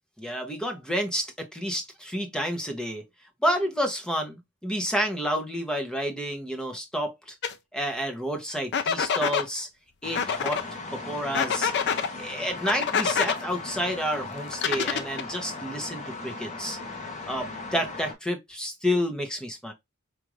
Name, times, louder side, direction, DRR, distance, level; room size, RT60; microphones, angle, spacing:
voice 1, 0.2-3.0 3.4-7.3 7.7-9.7 10.0-10.6 10.9-11.7 12.2-16.8 17.3-19.7, equal, 5° left, 0.8 m, -30 dB
sound 1, 7.4-7.5 8.7-9.5 10.1-10.6 11.3-12.1 12.7-13.4 14.5-15.3, left 7 dB, 50° left, 0.5 m, -26 dB
sound 2, 10.0-18.1, left 3 dB, 30° left, 0.9 m, -38 dB
4.9 x 2.5 x 3.0 m
head